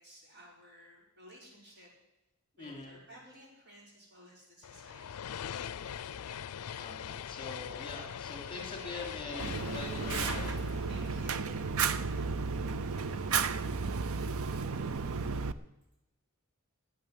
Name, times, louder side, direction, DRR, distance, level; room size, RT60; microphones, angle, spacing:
voice 1, 0.0-1.9 2.6-6.0 10.9-12.3, equal, 50° right, -3 dB, 4.9 m, -56 dB
voice 2, 2.6-3.0 6.8-10.5, left 3 dB, 25° left, 0 dB, 3.0 m, -44 dB
sound 1, 4.6-12.1, left 8 dB, 85° left, 0.4 m, -42 dB
sound 2, 8.6-12.8, left 1 dB, 30° right, 6.2 m, -56 dB
Fire, 9.4-15.5, right 5 dB, 70° right, 0.6 m, -33 dB
11.5 x 9.3 x 9.6 m, 0.96 s
head